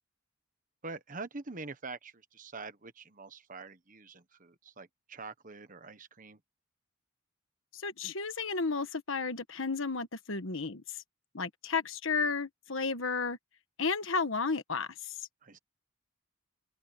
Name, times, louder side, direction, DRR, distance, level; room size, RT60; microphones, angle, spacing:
voice 1, 0.8-6.4 15.4-15.6, right 3 dB, 40° right, 1.3 m, -45 dB
voice 2, 7.7-11.0 11.3-13.4 13.8-15.1, left 4 dB, 65° left, 1.4 m, -33 dB
open air
head